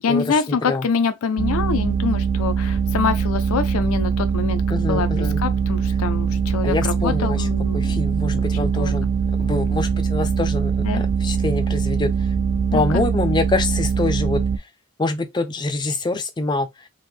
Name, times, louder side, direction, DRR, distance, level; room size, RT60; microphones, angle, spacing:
voice 1, 0.0-8.0 8.4-9.0 10.8-11.0 12.7-13.0, left 5 dB, 90° left, 0.4 m, -25 dB
sound 1, 1.4-14.6, right 6 dB, 55° right, 0.3 m, -22 dB
voice 2, 4.7-5.4 6.6-7.4 7.7-9.0 9.4-12.1 12.7-14.4 15.0-16.7, left 2 dB, 20° left, 0.3 m, -25 dB
3.4 x 2.1 x 3.1 m
head